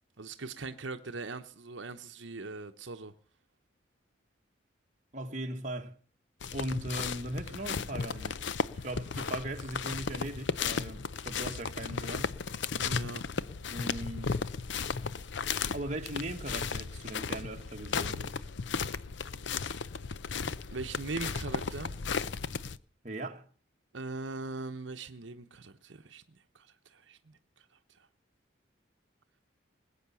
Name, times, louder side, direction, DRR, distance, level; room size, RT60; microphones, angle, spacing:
voice 1, 0.2-3.1 12.8-13.3 20.7-22.0 23.9-27.6 28.0-28.1, right 3 dB, 75° right, 0.9 m, -41 dB
voice 2, 5.1-5.9 6.5-8.4 8.8-12.3 13.7-14.4 15.7-18.3 23.0-23.4, right 1 dB, 40° right, 1.5 m, -39 dB
sound 1, 6.4-22.8, left 5 dB, 70° left, 0.6 m, -35 dB
20.0 x 8.5 x 7.0 m
head